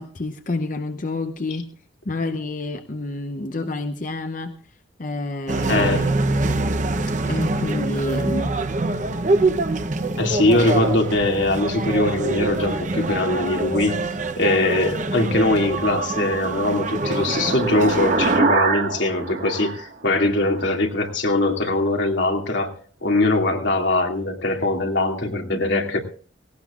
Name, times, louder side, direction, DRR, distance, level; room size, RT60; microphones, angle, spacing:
voice 1, 0.0-1.7 2.0-4.5 5.0-6.1 7.3-8.5, left 2 dB, 45° left, 7 dB, 0.8 m, -28 dB
sound 1, 5.5-18.4, right 2 dB, 40° right, 0.8 m, -25 dB
voice 2, 5.7-6.1 10.2-14.0 14.4-22.7 23.0-26.0, left 2 dB, 85° left, 2 dB, 2.5 m, -21 dB
sound 2, 16.0-20.7, right 3 dB, 60° right, 1.8 m, -25 dB
18.5 x 17.5 x 2.5 m, 0.41 s
head